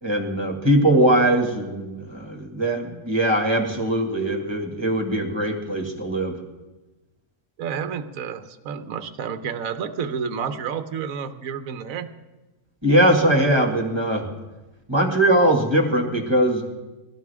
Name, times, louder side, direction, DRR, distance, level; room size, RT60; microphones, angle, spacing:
voice 1, 0.0-6.4 12.8-14.3 14.9-16.6, right 1 dB, 15° right, 2 dB, 2.0 m, -21 dB
voice 2, 7.6-12.1, right 7 dB, 65° right, 9 dB, 1.3 m, -30 dB
21.5 x 17.0 x 3.6 m, 1.1 s
omnidirectional pair, 1.6 m